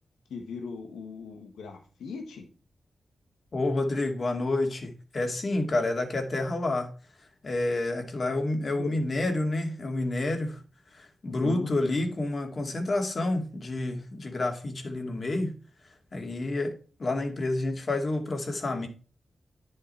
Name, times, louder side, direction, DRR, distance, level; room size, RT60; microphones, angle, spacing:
voice 1, 0.3-2.5 8.7-9.0 11.3-11.7, left 4 dB, 90° left, 1.4 m, -39 dB
voice 2, 3.5-6.9 7.4-10.6 10.9-15.5 16.1-18.9, left 2 dB, 50° left, 2.5 m, -29 dB
10.0 x 6.6 x 4.4 m
cardioid pair, 50°, 0 cm